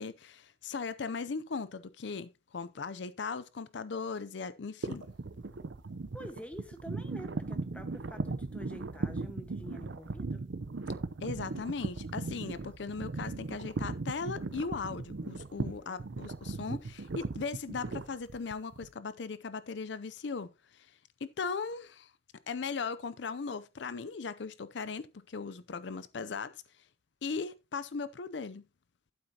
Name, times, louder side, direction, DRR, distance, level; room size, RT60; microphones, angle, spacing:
voice 1, 0.0-5.1 11.2-20.9 21.2-22.1 22.5-26.6 27.2-28.6, left 5 dB, 70° left, 0.5 m, -38 dB
sound 1, 4.8-18.9, right 3 dB, 75° right, 0.7 m, -38 dB
voice 2, 6.1-10.5 15.6-15.9, equal, 5° left, 1.3 m, -47 dB
12.0 x 7.9 x 2.8 m
head